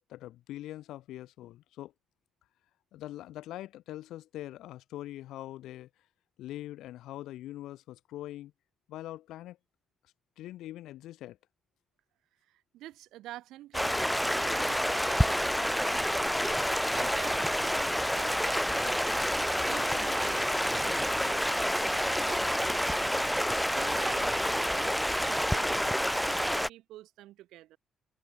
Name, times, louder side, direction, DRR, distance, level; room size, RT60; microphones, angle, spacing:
voice 1, 0.1-1.9 2.9-5.9 6.4-8.5 8.9-9.6 10.4-11.4, left 14 dB, 85° left, 0.4 m, -43 dB
voice 2, 12.5-17.8 18.1-27.8, right 15 dB, 90° right, 2.7 m, -48 dB
Stream, 13.7-26.7, equal, ahead, 0.4 m, -28 dB
cardioid pair, 90°, 0 cm